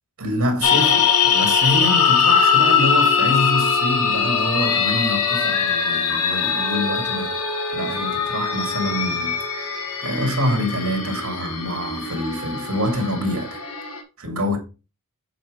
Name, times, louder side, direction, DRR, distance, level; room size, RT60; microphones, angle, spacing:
voice 1, 0.2-7.3 7.7-13.6 14.2-14.6, equal, 70° right, 2.3 m, -26 dB
sound 1, 0.6-14.0, left 6 dB, 80° left, 1.6 m, -21 dB
7.6 x 4.0 x 4.9 m
head